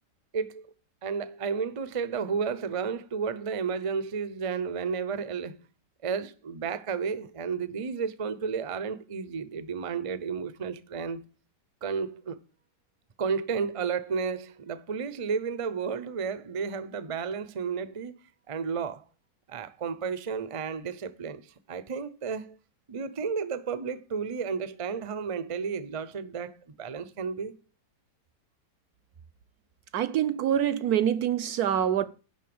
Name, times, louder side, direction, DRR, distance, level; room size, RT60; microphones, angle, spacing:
voice 1, 0.3-0.7 1.0-5.6 6.0-11.3 11.8-12.4 13.2-18.2 18.5-19.0 19.5-22.5 22.9-27.5, right 5 dB, 40° right, 0.4 m, -32 dB
voice 2, 29.9-32.1, right 10 dB, 70° right, 1.1 m, -25 dB
11.0 x 4.0 x 7.8 m
omnidirectional pair, 1.9 m